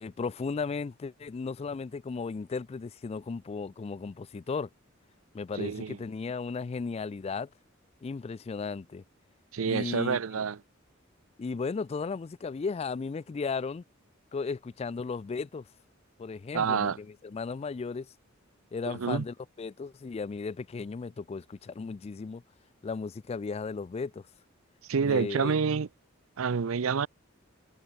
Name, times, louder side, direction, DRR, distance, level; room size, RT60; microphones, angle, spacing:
voice 1, 0.0-4.7 5.3-7.5 8.0-9.0 9.7-10.4 11.4-13.8 14.3-15.7 16.2-18.1 18.7-22.4 22.8-24.2 25.0-25.6, left 4 dB, 30° left, 0.3 m, -35 dB
voice 2, 5.6-6.0 9.5-10.6 16.5-17.0 18.9-19.2 24.9-25.9 26.4-27.1, right 6 dB, 85° right, 0.6 m, -28 dB
head